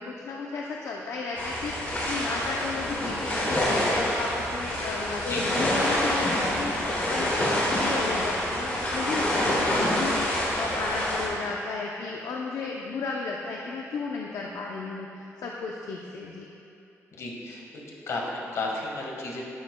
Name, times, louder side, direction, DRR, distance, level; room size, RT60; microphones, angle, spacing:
voice 1, 0.0-3.6 4.0-6.8 7.1-16.5, left 4 dB, 80° left, -1 dB, 0.6 m, -34 dB
sound 1, 1.4-11.3, left 1 dB, 35° left, 1.7 m, -27 dB
voice 2, 17.1-19.4, left 2 dB, 65° left, -1 dB, 1.5 m, -33 dB
11.5 x 9.2 x 2.2 m, 2.7 s
wide cardioid pair, 165°, 5 cm